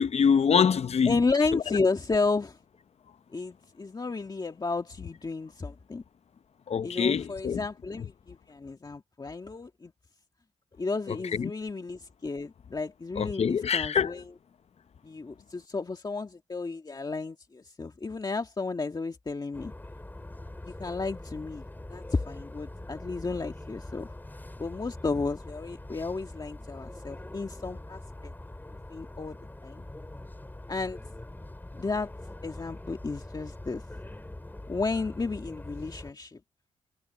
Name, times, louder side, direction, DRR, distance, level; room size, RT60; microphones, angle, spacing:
voice 1, 0.0-1.2 1.5-1.6 6.7-7.6 11.1-11.5 13.2-14.1, left 7 dB, 55° left, 0.7 m, -25 dB
voice 2, 1.1-2.6 3.3-6.0 6.8-9.9 10.8-14.2 15.0-19.7 20.6-21.6 21.9-24.1 24.6-28.3 28.7-29.9 30.7-31.0 31.7-32.1 32.4-33.8 34.7-36.4, left 3 dB, 35° left, 1.9 m, -32 dB
sound 1, 19.5-36.1, left 1 dB, 15° left, 5.8 m, -43 dB
cardioid pair, 80°, 13 cm